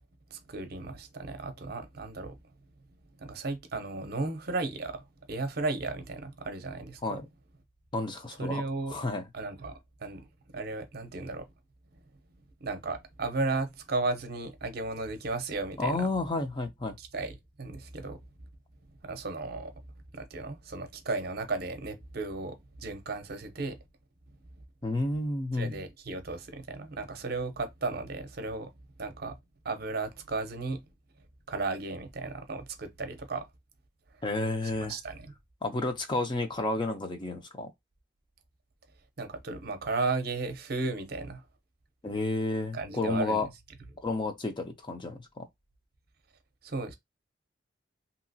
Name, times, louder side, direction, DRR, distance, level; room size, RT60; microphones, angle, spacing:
voice 1, 0.3-2.4 3.2-7.2 8.4-9.0 9.3-11.5 12.6-16.1 17.0-18.2 19.0-19.7 20.1-23.8 25.5-28.7 29.0-29.4 29.6-30.8 31.5-33.5 34.8-35.3 39.2-41.4 42.7-43.5 46.6-47.0, right 3 dB, 55° right, 0.7 m, -35 dB
voice 2, 7.9-8.6 8.9-9.2 15.8-16.9 24.8-25.7 34.2-35.0 35.6-37.7 42.0-43.5 44.0-45.5, left 2 dB, 25° left, 0.5 m, -31 dB
2.9 x 2.8 x 2.7 m
head